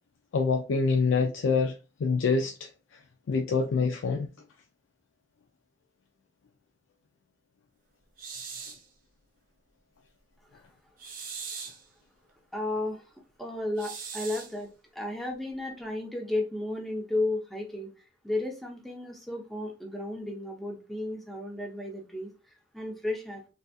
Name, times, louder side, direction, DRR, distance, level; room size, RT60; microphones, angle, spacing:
voice 1, 0.3-1.7 2.0-2.7 3.3-4.3, left 4 dB, 90° left, 0.4 m, -25 dB
sound 1, 8.2-8.9 11.0-11.8 13.8-14.6, right 6 dB, 45° right, 0.6 m, -40 dB
voice 2, 12.5-13.0 13.4-17.9 18.2-23.5, left 2 dB, ahead, 0.6 m, -33 dB
3.9 x 2.5 x 2.3 m
head